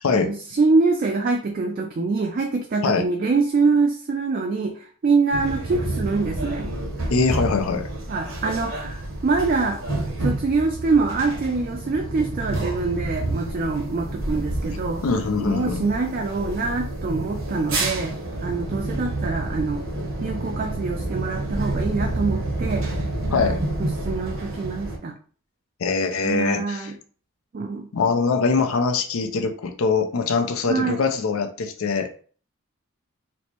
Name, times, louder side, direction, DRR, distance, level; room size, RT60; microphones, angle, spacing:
voice 1, 0.1-6.7 8.1-9.8 10.2-15.0 15.4-18.1 18.4-19.8 20.2-22.9 23.4-25.1 26.2-27.0 27.5-27.9 30.7-31.0, right 4 dB, 40° right, 3 dB, 0.3 m, -24 dB
sound 1, 5.3-25.0, right 2 dB, 65° right, 0.8 m, -29 dB
voice 2, 7.1-7.9 15.0-15.8 23.3-23.6 25.8-26.9 27.9-32.1, left 4 dB, 75° left, 6 dB, 0.5 m, -23 dB
4.2 x 2.1 x 2.9 m, 0.43 s
head